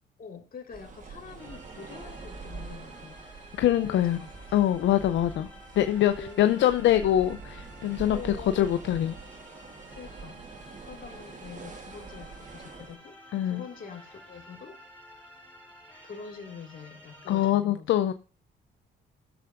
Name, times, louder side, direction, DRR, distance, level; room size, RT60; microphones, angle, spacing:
voice 1, 0.2-3.2 3.6-4.3 6.2-6.7 8.1-8.7 9.9-13.2 13.4-14.8 15.1-15.2 16.0-17.9, left 5 dB, 45° left, 2.1 m, -44 dB
sound 1, 0.7-13.0, right 4 dB, 40° right, 1.4 m, -44 dB
sound 2, 1.4-17.5, equal, 5° left, 4.9 m, -52 dB
voice 2, 3.6-4.2 4.5-5.5 5.8-8.2 8.5-9.2 13.3-13.6 17.3-18.1, left 12 dB, 70° left, 0.5 m, -24 dB
18.5 x 6.8 x 2.5 m
cardioid pair, 90°, 20 cm